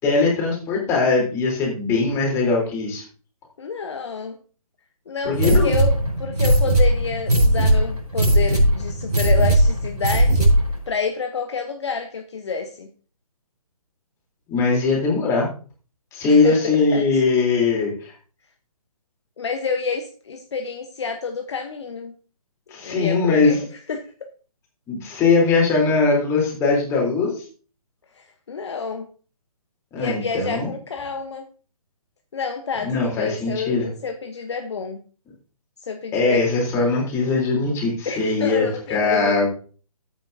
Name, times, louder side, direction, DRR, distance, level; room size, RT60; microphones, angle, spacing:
voice 1, 0.0-3.0 5.2-5.7 14.5-15.5 16.1-18.1 22.7-23.6 24.9-27.4 29.9-30.7 32.8-33.9 36.1-39.5, left 4 dB, 15° left, -2 dB, 3.6 m, -20 dB
voice 2, 3.6-4.4 5.1-10.5 10.9-12.9 16.3-17.0 19.4-22.1 22.8-23.6 23.9-24.3 28.1-29.1 29.9-31.5 32.3-35.0 35.8-36.4 38.0-39.5, left 5 dB, 45° left, 5 dB, 1.0 m, -29 dB
sound 1, 5.3-10.8, right 1 dB, 85° right, 4.8 m, -18 dB
13.5 x 8.8 x 2.7 m, 0.39 s
figure-of-eight pair, 140°, 19 cm